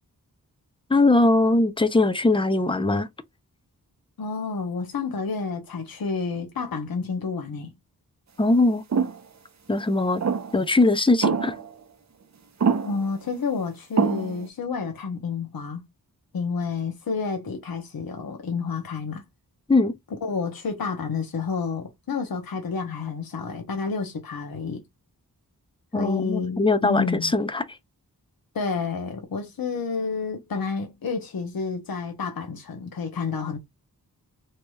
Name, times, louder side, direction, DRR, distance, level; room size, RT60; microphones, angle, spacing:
voice 1, 0.9-3.1 8.4-8.8 9.7-10.2 10.5-11.5 19.7-19.9 25.9-27.6, left 2 dB, 15° left, 0.4 m, -21 dB
voice 2, 4.2-7.7 12.8-15.8 16.3-19.2 20.2-24.8 25.9-27.3 28.5-33.6, left 5 dB, 70° left, 0.8 m, -30 dB
sound 1, 8.9-9.2 10.2-10.6 11.2-11.7 12.6-13.1 14.0-14.5, right 5 dB, 50° right, 0.6 m, -24 dB
3.1 x 2.8 x 2.2 m
wide cardioid pair, 80°, 37 cm